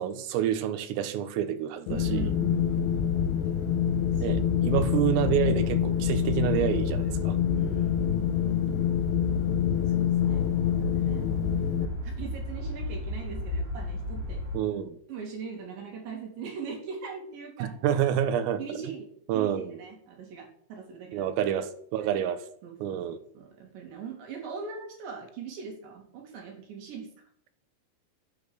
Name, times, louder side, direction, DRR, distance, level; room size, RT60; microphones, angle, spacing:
voice 1, 0.0-2.3 4.2-7.4 14.5-15.0 17.6-18.6 19.3-19.7 21.1-22.4 22.8-23.2, right 10 dB, 80° right, 4.0 m, -28 dB
Wind, 1.9-11.9, left 10 dB, 80° left, 3.1 m, -27 dB
sound 1, 1.9-14.6, left 1 dB, 15° right, 3.4 m, -34 dB
voice 2, 1.9-3.1 4.1-4.4 7.5-8.7 9.9-10.4 10.7-11.2 11.8-14.4 15.1-17.8 18.6-21.3 22.0-22.2 22.6-23.0 23.3-27.1, right 6 dB, 60° right, 5.5 m, -41 dB
12.5 x 8.8 x 8.4 m
omnidirectional pair, 5.9 m